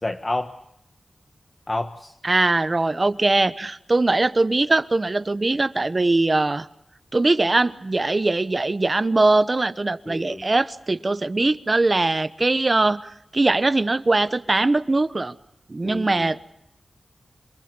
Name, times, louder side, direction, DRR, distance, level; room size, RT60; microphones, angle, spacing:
voice 1, 0.0-0.5 1.7-2.1 10.1-10.5 11.4-11.5 15.8-16.3, left 2 dB, 30° left, 6 dB, 1.4 m, -29 dB
voice 2, 2.2-6.7 7.1-15.3 15.7-16.4, right 2 dB, 40° right, 13 dB, 1.2 m, -21 dB
27.0 x 20.5 x 9.7 m, 0.79 s
wide cardioid pair, 65°, 0 cm